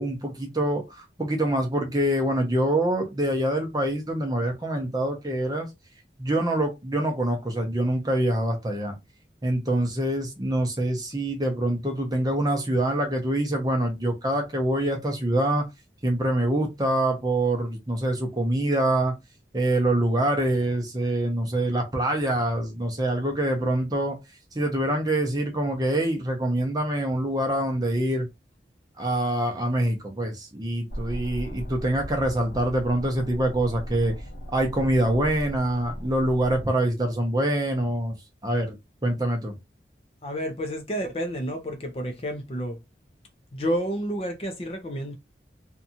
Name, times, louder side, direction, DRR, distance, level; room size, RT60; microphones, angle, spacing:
voice 1, 0.0-5.7 6.2-8.9 9.4-15.7 16.0-19.2 19.5-24.2 24.5-28.3 29.0-34.1 34.5-38.2 38.4-38.8 39.0-39.5, right 1 dB, 20° right, 0.6 m, -25 dB
sound 1, 30.9-36.7, equal, 80° left, 0.9 m, -37 dB
voice 2, 40.2-42.8 43.5-45.1, equal, 35° left, 0.5 m, -30 dB
2.7 x 2.4 x 2.7 m
head